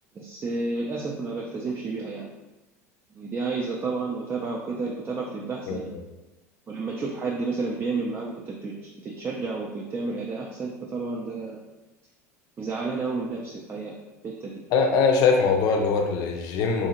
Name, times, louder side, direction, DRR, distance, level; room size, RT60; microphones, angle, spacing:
voice 1, 0.1-2.3 3.2-5.9 6.7-8.7 9.0-11.6 12.6-14.0 14.2-14.6, right 3 dB, 25° right, -2 dB, 0.4 m, -31 dB
voice 2, 14.7-16.9, left 5 dB, 50° left, 3 dB, 0.5 m, -22 dB
2.7 x 2.4 x 2.7 m, 1.1 s
figure-of-eight pair, 75°, 9 cm